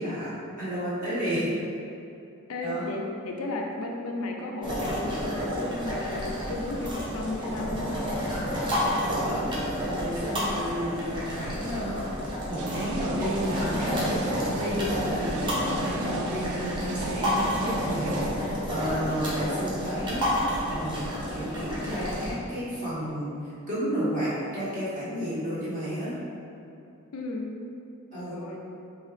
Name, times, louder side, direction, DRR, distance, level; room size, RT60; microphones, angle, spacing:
voice 1, 0.0-1.4 2.6-2.9 9.0-9.4 9.9-12.2 12.5-20.3 20.6-26.1 28.1-28.4, equal, 40° right, -11 dB, 1.4 m, -32 dB
voice 2, 2.5-8.1 10.3-10.9 27.1-27.5 28.1-28.6, left 2 dB, 70° left, 1 dB, 0.5 m, -34 dB
sound 1, 4.6-22.3, equal, 20° right, 0.7 m, -30 dB
sound 2, 12.6-18.3, right 2 dB, 75° right, 0.4 m, -35 dB
4.5 x 2.4 x 3.3 m, 2.6 s
head